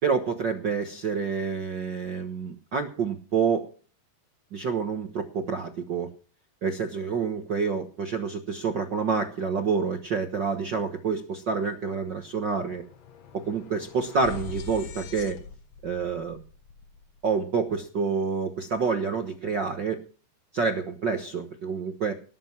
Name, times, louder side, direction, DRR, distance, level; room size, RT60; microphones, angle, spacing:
voice 1, 0.0-3.7 4.5-6.1 6.6-12.8 13.3-15.4 15.8-16.4 17.2-20.0 20.5-22.1, right 5 dB, 70° right, 6 dB, 1.0 m, -28 dB
sound 1, 11.2-11.3 11.5-17.8, left 7 dB, 60° left, 2.2 m, -44 dB
19.0 x 7.7 x 5.9 m, 0.40 s
omnidirectional pair, 4.0 m